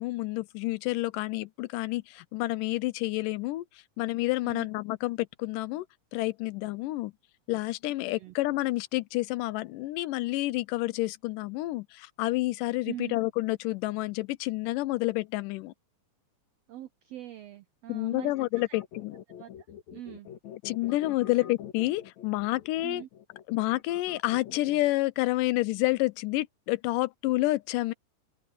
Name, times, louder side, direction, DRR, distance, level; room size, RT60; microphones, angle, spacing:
voice 1, 0.0-3.6 4.0-5.9 6.1-7.1 7.5-15.7 17.9-19.2 20.7-23.0 23.5-27.9, left 19 dB, 80° left, 2.2 m, -29 dB
voice 2, 12.8-13.2 16.7-18.8 19.4-19.5 19.9-20.3 22.8-23.1, right 13 dB, 85° right, 1.4 m, -42 dB
sound 1, 18.2-25.0, left 9 dB, 60° left, 2.7 m, -45 dB
omnidirectional pair, 3.9 m